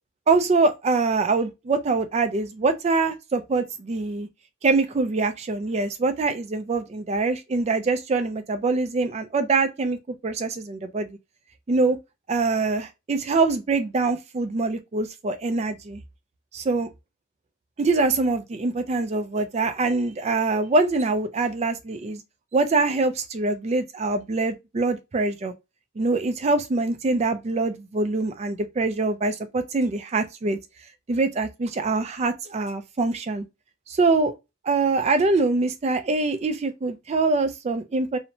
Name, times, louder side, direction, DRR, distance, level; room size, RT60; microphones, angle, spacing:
voice 1, 0.3-4.3 4.6-10.0 10.2-11.1 11.7-12.0 12.3-16.0 16.5-16.9 17.8-22.2 22.5-25.5 26.0-30.6 31.1-33.5 33.9-34.3 34.7-38.2, right 3 dB, 30° right, 0.3 m, -24 dB
2.8 x 2.1 x 2.6 m
head